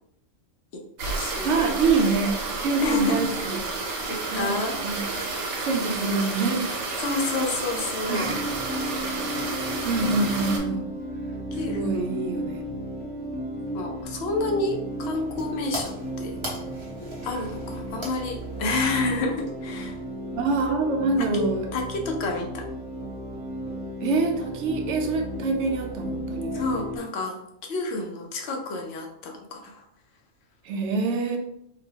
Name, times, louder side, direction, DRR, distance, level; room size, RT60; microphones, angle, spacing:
voice 1, 0.7-1.7 2.8-3.2 4.1-4.8 7.0-8.3 11.5-12.2 13.7-16.4 17.2-20.0 21.2-22.7 26.5-27.4 27.7-29.8, left 2 dB, 60° left, 2 dB, 0.8 m, -29 dB
sound 1, 1.0-10.6, right 3 dB, 85° right, 1.1 m, -31 dB
voice 2, 1.4-2.4 2.6-3.6 4.3-4.5 4.8-5.0 5.6-6.7 8.1-8.5 9.8-10.9 11.7-12.9 20.3-21.7 24.0-26.7 30.6-31.4, right 3 dB, 70° right, 3 dB, 0.9 m, -25 dB
sound 2, 8.2-27.0, right 1 dB, 10° left, 0.5 m, -34 dB
sound 3, 14.6-19.9, right 1 dB, 25° right, 0.7 m, -41 dB
4.0 x 2.2 x 2.8 m, 0.78 s
omnidirectional pair, 1.3 m